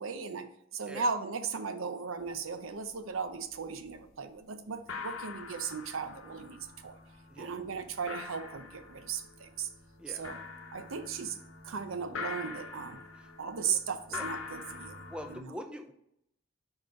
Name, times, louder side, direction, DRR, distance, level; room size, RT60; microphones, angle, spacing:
voice 1, 0.0-7.0 7.4-9.7 10.1-10.4 10.7-11.4 11.6-13.0 13.4-15.0 15.3-15.5, right 5 dB, 85° right, 9 dB, 0.6 m, -37 dB
sound 1, 2.2-2.3 2.6-3.1 3.5-4.0 4.4-4.5 4.7-15.4, left 4 dB, 85° left, 0.9 m, -44 dB
voice 2, 15.1-15.9, equal, 5° right, 6 dB, 0.5 m, -44 dB
4.9 x 4.2 x 4.8 m, 0.75 s
head